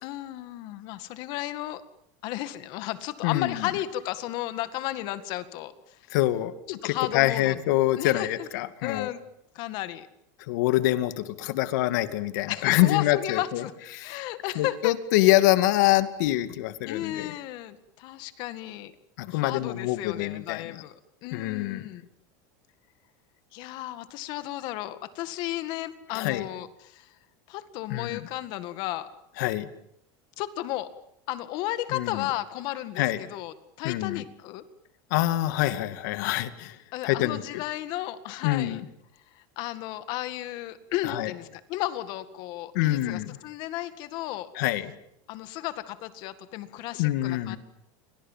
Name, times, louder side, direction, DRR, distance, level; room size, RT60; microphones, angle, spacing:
voice 1, 0.0-1.8 2.2-6.0 6.7-7.6 7.9-8.3 8.8-9.2 9.5-10.1 12.5-13.7 14.0-14.9 16.8-18.9 19.3-22.1 23.5-27.1 27.5-29.1 30.4-30.9 31.3-34.6 36.9-38.8 39.3-44.5 45.3-47.6, left 14 dB, 45° left, 12 dB, 1.9 m, -34 dB
voice 2, 3.2-3.6 6.1-9.1 10.5-13.6 13.9-14.2 14.6-17.3 19.2-20.8 21.3-21.9 26.1-26.5 27.9-28.2 29.4-29.7 31.9-32.3 33.0-33.2 33.8-34.2 35.1-36.8 37.0-37.6 38.4-38.9 41.0-41.3 42.7-43.4 44.6-44.9 47.0-47.6, left 15 dB, 70° left, 12 dB, 2.3 m, -25 dB
29.5 x 25.0 x 7.5 m, 0.75 s
supercardioid pair, 165°, 10 cm